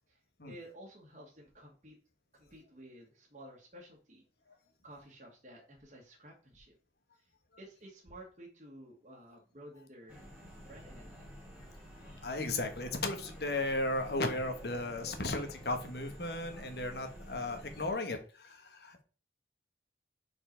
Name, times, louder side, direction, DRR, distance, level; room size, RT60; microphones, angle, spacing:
voice 1, 0.1-1.9 2.3-4.2 4.8-6.7 7.6-10.1 10.6-11.3, right 1 dB, 40° right, -3 dB, 1.5 m, -53 dB
sound 1, 10.1-17.9, equal, 5° right, 2.3 m, -50 dB
voice 2, 12.2-19.0, left 2 dB, 70° left, 6 dB, 1.2 m, -35 dB
5.0 x 4.5 x 4.5 m, 0.36 s
head